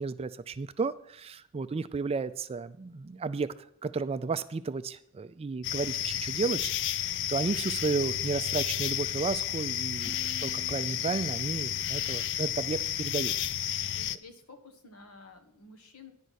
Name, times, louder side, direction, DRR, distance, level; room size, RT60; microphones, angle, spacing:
voice 1, 0.0-3.5 3.8-13.8, right 4 dB, 25° right, 13 dB, 0.3 m, -33 dB
sound 1, 5.6-14.2, left 11 dB, 60° left, 0.4 m, -32 dB
sound 2, 10.0-13.0, right 1 dB, 10° left, 0.8 m, -52 dB
voice 2, 13.8-16.1, left 3 dB, 80° left, 6 dB, 1.3 m, -51 dB
10.0 x 5.5 x 6.3 m, 0.72 s
head